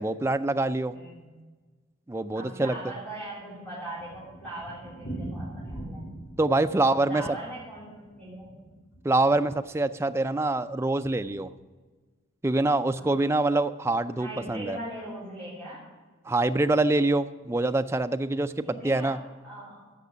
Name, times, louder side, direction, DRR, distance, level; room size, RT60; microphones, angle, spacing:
voice 1, 0.0-1.0 2.1-2.8 6.4-7.4 9.0-11.5 12.4-14.8 16.3-19.2, right 2 dB, 15° right, 9 dB, 0.3 m, -25 dB
voice 2, 0.9-1.3 2.4-6.0 6.7-8.6 13.0-13.3 14.1-15.9 18.6-19.9, right 1 dB, 5° left, -9 dB, 3.3 m, -40 dB
Thunder, 3.3-9.4 9.7-9.8 10.1-10.2 10.4-10.5 11.1-11.4, right 1 dB, 80° left, 2.5 m, -42 dB
15.0 x 5.9 x 6.7 m, 1.4 s
head